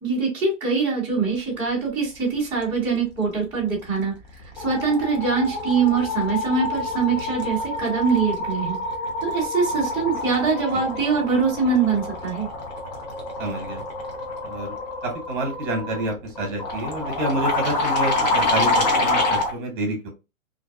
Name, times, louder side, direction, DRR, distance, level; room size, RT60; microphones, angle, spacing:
voice 1, 0.0-4.1 4.5-8.8 9.2-12.5, right 5 dB, 5° right, -10 dB, 0.7 m, -23 dB
sound 1, 3.7-4.0 4.3-19.5, left 2 dB, 35° left, 0.5 m, -27 dB
voice 2, 13.4-13.8 14.4-14.7 15.0-20.1, right 1 dB, 40° right, 2 dB, 1.1 m, -28 dB
2.6 x 2.1 x 2.3 m, 0.27 s
hypercardioid pair, 155°, 40 cm